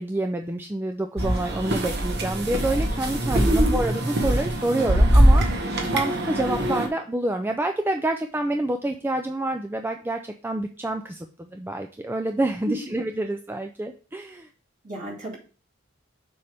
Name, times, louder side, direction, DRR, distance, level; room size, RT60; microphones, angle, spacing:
voice 1, 0.0-14.5, right 1 dB, 10° right, 5 dB, 0.4 m, -28 dB
sound 1, 1.2-6.9, right 1 dB, 60° right, 1.2 m, -22 dB
voice 2, 3.4-3.8 12.7-12.9 14.8-15.4, equal, 40° right, -4 dB, 2.6 m, -27 dB
6.8 x 5.1 x 3.4 m, 0.38 s
head